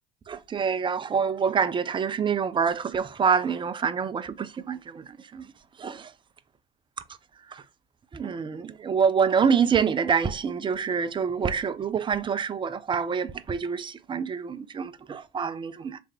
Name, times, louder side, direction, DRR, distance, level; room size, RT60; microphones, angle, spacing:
voice 1, 0.3-4.8 5.3-5.4 5.8-6.0 8.1-16.0, right 6 dB, 15° right, 0.3 m, -26 dB
3.3 x 3.2 x 3.4 m
hypercardioid pair, 65°, 30 cm